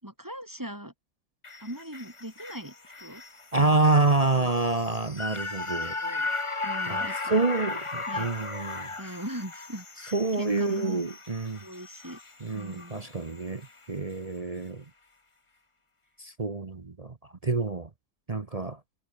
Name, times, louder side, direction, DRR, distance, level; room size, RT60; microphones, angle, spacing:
voice 1, 0.0-0.9 1.6-3.2 3.6-3.9 4.3-4.5 6.0-6.3 6.6-7.5 8.1-8.3 9.0-11.0 11.6-12.2 12.5-13.0, equal, 10° right, 4.5 m, -40 dB
sound 1, 1.4-13.8 14.1-14.2, left 3 dB, 20° left, 1.1 m, -36 dB
voice 2, 3.5-6.0 6.9-8.9 10.1-11.6 12.4-14.8 16.2-17.1 17.4-17.9 18.3-18.8, right 3 dB, 35° right, 0.6 m, -27 dB
omnidirectional pair, 2.1 m